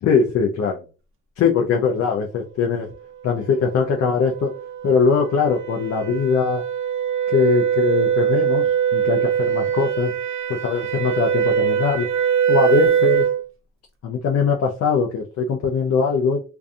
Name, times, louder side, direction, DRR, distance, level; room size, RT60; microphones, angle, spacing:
voice 1, 0.0-0.8 1.4-2.9 3.2-4.5 4.8-6.6 7.3-10.1 10.5-12.1 12.5-13.3 14.0-16.4, left 5 dB, 55° left, 0.5 m, -21 dB
sound 1, 3.5-13.4, right 8 dB, 45° right, 0.5 m, -22 dB
2.5 x 2.3 x 2.4 m
cardioid pair, 90°, 30 cm